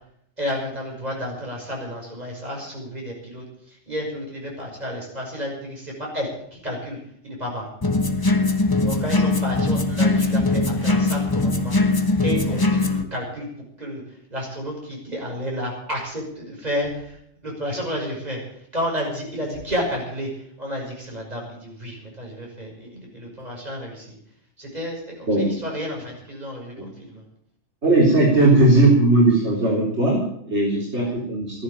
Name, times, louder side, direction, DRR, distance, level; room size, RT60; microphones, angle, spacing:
voice 1, 0.4-7.7 8.8-11.8 12.2-13.5 13.8-24.2 24.6-27.2 31.0-31.1, equal, 35° right, -2 dB, 6.3 m, -31 dB
sound 1, 7.8-13.0, left 2 dB, 20° left, 1.1 m, -21 dB
voice 2, 27.8-31.6, right 2 dB, 60° right, -3 dB, 3.9 m, -18 dB
14.0 x 11.0 x 8.5 m, 0.69 s
omnidirectional pair, 1.3 m